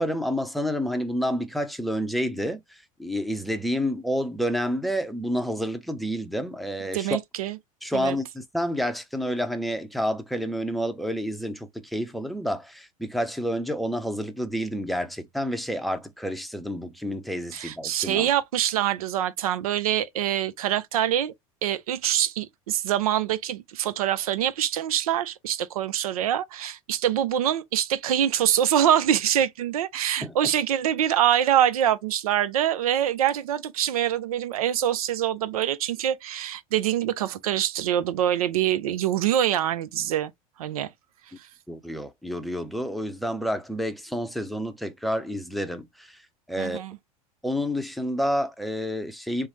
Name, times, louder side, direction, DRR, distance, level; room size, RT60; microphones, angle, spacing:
voice 1, 0.0-7.1 7.8-18.3 30.2-30.5 41.7-46.8 47.4-49.5, equal, ahead, 0.6 m, -29 dB
voice 2, 6.9-7.6 7.9-8.2 17.5-21.3 21.6-40.3 40.6-40.9 41.4-41.5 46.6-47.0, right 11 dB, 80° right, 0.4 m, -25 dB
3.1 x 2.0 x 2.9 m
hypercardioid pair, 85°, 18 cm